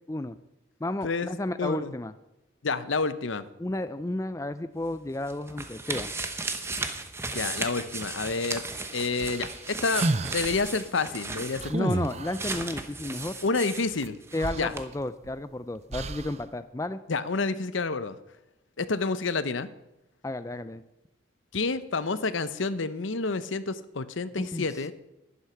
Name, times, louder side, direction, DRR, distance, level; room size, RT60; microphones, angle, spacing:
voice 1, 0.8-2.1 3.6-6.1 11.7-13.4 14.3-17.0 20.2-20.8 24.4-24.7, left 1 dB, 15° left, 12 dB, 0.4 m, -32 dB
voice 2, 1.6-1.9 2.6-3.4 7.3-8.6 8.9-11.9 13.4-14.2 14.5-14.7 17.1-18.2 18.8-19.7 21.5-24.9, left 4 dB, 80° left, 14 dB, 0.8 m, -29 dB
sound 1, 4.8-14.5 14.7-14.8, right 3 dB, 15° right, 0.9 m, -35 dB
sound 2, 9.1-10.7 11.6-12.5 14.0-14.1 14.4-15.4 15.9-16.4, right 2 dB, 35° right, 0.6 m, -31 dB
11.0 x 11.0 x 5.8 m, 0.94 s
head